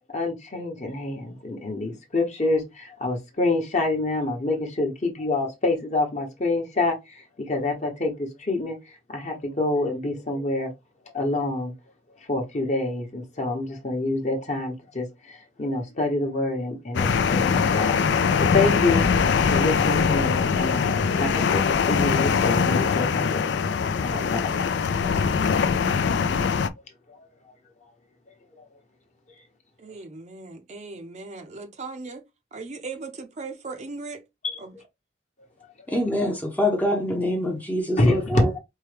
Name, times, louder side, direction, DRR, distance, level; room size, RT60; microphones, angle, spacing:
voice 1, 0.1-10.7 11.1-11.7 12.3-19.1 19.5-23.4 24.0-24.6 27.1-27.3 28.6-28.7 34.4-34.6 38.0-38.6, left 2 dB, 40° left, 1.0 m, -27 dB
sound 1, 16.9-26.7, left 6 dB, 70° left, 0.4 m, -22 dB
voice 2, 29.8-32.2 32.5-34.2 34.6-34.7, right 3 dB, 40° right, 0.5 m, -38 dB
voice 3, 35.9-38.5, left 1 dB, 10° left, 0.6 m, -25 dB
4.5 x 2.2 x 3.3 m
head